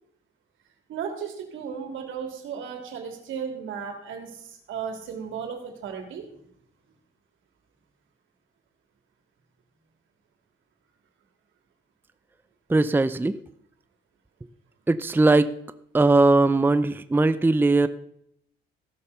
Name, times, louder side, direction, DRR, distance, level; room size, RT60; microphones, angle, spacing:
voice 1, 0.9-6.3, right 7 dB, 80° right, 4 dB, 3.1 m, -35 dB
voice 2, 12.7-13.4 14.9-15.5 15.9-17.9, right 2 dB, 10° right, 12 dB, 0.5 m, -19 dB
15.5 x 6.7 x 6.8 m, 0.72 s
cardioid pair, 90°, 20 cm